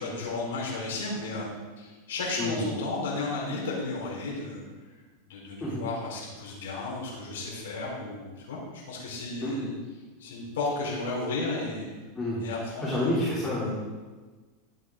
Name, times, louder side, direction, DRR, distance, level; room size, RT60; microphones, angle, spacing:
voice 1, 0.0-1.5 1.8-4.6 5.3-9.7 10.2-11.9 12.4-13.2, left 3 dB, 85° left, -4 dB, 4.0 m, -33 dB
voice 2, 12.8-13.7, left 1 dB, 15° left, -9 dB, 3.1 m, -28 dB
14.0 x 8.3 x 3.8 m, 1.3 s
supercardioid pair, 145°, 0 cm